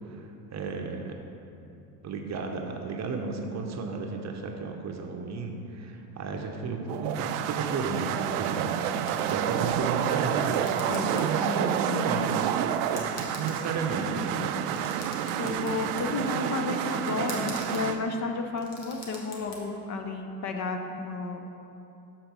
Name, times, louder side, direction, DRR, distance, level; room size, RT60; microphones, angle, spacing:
voice 1, 0.1-1.2 2.0-12.4 13.3-14.2, right 4 dB, 35° right, 3 dB, 0.8 m, -33 dB
sound 1, 6.9-18.0, right 10 dB, 65° right, 0.5 m, -29 dB
sound 2, 9.1-9.8 10.1-11.2 11.6-11.7 12.5-12.6 13.0-13.9 14.5-16.1 17.1-17.9 18.4-19.6, left 3 dB, 90° left, 1.3 m, -44 dB
voice 2, 10.9-12.3 14.0-14.5 15.3-21.4, left 4 dB, 35° left, 4 dB, 0.7 m, -32 dB
6.7 x 4.0 x 6.0 m, 2.8 s
hypercardioid pair, 85°, 48 cm